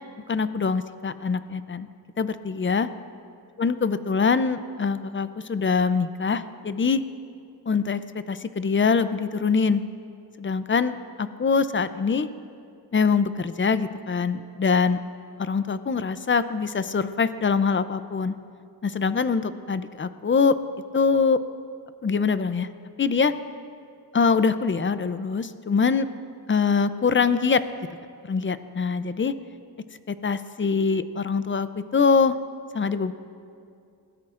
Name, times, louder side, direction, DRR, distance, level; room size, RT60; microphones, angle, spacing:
voice 1, 0.3-1.9 2.2-2.9 3.6-7.0 7.7-9.8 10.4-12.3 12.9-15.0 15.4-18.3 18.8-20.6 20.9-21.4 22.0-22.7 23.0-23.3 24.1-26.1 26.5-27.6 28.3-29.3 30.1-32.3 32.7-33.1, left 5 dB, 30° left, 13 dB, 0.5 m, -23 dB
20.5 x 16.0 x 2.5 m, 2.4 s
wide cardioid pair, 105°, 38 cm